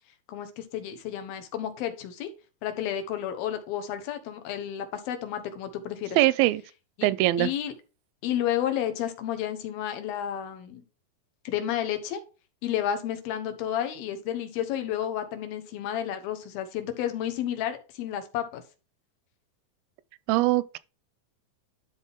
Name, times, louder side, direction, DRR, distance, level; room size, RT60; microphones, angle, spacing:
voice 1, 0.3-2.3 2.6-6.2 7.0-7.1 7.4-7.7 8.2-10.8 11.4-12.2 12.6-18.6, left 10 dB, 85° left, 3.0 m, -31 dB
voice 2, 6.2-6.6 7.0-7.5 20.3-20.8, right 17 dB, 85° right, 2.4 m, -22 dB
12.0 x 4.1 x 3.5 m
omnidirectional pair, 4.2 m